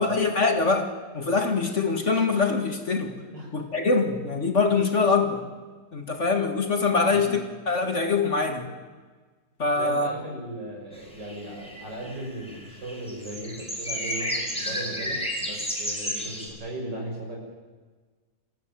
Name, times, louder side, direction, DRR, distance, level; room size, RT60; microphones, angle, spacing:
voice 1, 0.0-3.1 3.5-5.4 5.9-8.7 9.6-10.1, left 4 dB, 40° left, 5 dB, 2.1 m, -24 dB
voice 2, 9.7-17.4, right 1 dB, 70° right, 0 dB, 6.9 m, -37 dB
sound 1, 10.9-11.0 11.2-16.5, equal, 5° left, 5.0 m, -32 dB
27.0 x 15.0 x 9.1 m, 1.4 s
omnidirectional pair, 1.9 m